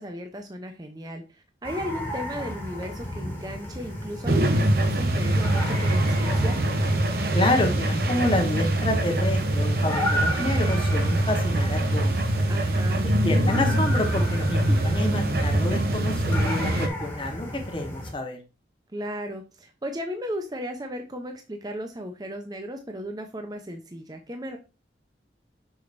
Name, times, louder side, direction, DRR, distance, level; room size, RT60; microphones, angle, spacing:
voice 1, 0.0-6.6 12.5-13.0 18.9-24.6, equal, 20° right, 5 dB, 0.6 m, -35 dB
sound 1, 1.6-18.1, equal, 15° left, 1.9 m, -34 dB
sound 2, 4.3-16.9, right 1 dB, 55° right, 0.9 m, -23 dB
voice 2, 7.3-12.2 13.0-18.4, left 1 dB, 30° left, 3 dB, 1.1 m, -28 dB
6.4 x 6.0 x 2.6 m, 0.29 s
head